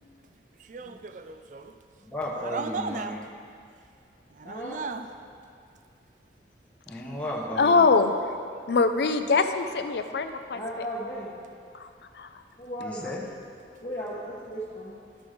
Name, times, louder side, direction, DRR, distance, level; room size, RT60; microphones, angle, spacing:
voice 1, 0.6-1.7 2.4-3.2 4.3-5.1, right 4 dB, 45° right, 8 dB, 0.4 m, -36 dB
voice 2, 2.0-3.2 6.9-7.9 12.8-13.3, left 1 dB, 5° left, -6 dB, 1.0 m, -34 dB
voice 3, 4.4-4.8 10.5-11.3 12.6-13.0 13.8-14.9, equal, 35° left, -10 dB, 1.2 m, -36 dB
voice 4, 7.6-8.1 8.7-10.9 12.2-12.3, left 4 dB, 70° left, 8 dB, 0.5 m, -23 dB
11.5 x 5.2 x 5.0 m, 2.3 s
head